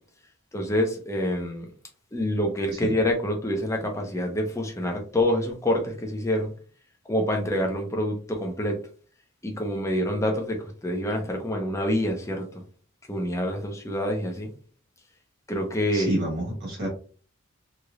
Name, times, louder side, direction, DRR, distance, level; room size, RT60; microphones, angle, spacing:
voice 1, 0.5-1.7 2.1-6.5 7.1-8.7 9.4-12.6 13.1-14.5 15.5-16.2, left 1 dB, 15° left, 0.6 m, -27 dB
voice 2, 15.9-16.9, right 1 dB, 50° right, 1.3 m, -29 dB
3.1 x 2.9 x 2.4 m
head